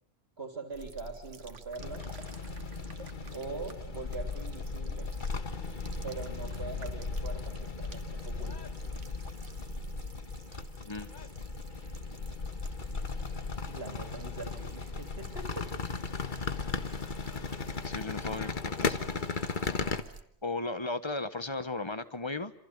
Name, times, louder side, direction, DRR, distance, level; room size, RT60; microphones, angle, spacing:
voice 1, 0.4-2.1 3.3-5.1 6.0-8.7 13.7-15.7, right 3 dB, 55° right, 6 dB, 3.6 m, -42 dB
sound 1, 0.7-20.2, right 5 dB, 75° right, 1.8 m, -49 dB
sound 2, 1.8-20.0, left 4 dB, 40° left, 1.5 m, -36 dB
voice 2, 10.5-11.1 17.8-19.0 20.4-22.5, left 2 dB, 25° left, 13 dB, 1.2 m, -36 dB
sound 3, 13.1-19.5, right 3 dB, 35° right, 2.3 m, -60 dB
27.5 x 27.0 x 6.8 m, 0.64 s
omnidirectional pair, 1.3 m